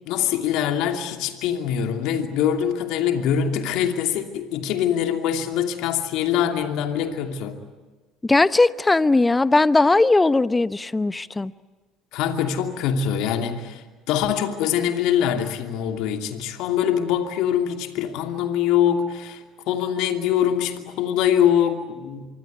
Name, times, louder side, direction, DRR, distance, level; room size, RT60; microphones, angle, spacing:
voice 1, 0.1-7.6 12.1-22.3, left 9 dB, 65° left, 2.7 m, -23 dB
voice 2, 8.2-11.5, left 2 dB, 15° left, 0.9 m, -18 dB
25.5 x 23.5 x 9.5 m
hypercardioid pair, 65°, 0 cm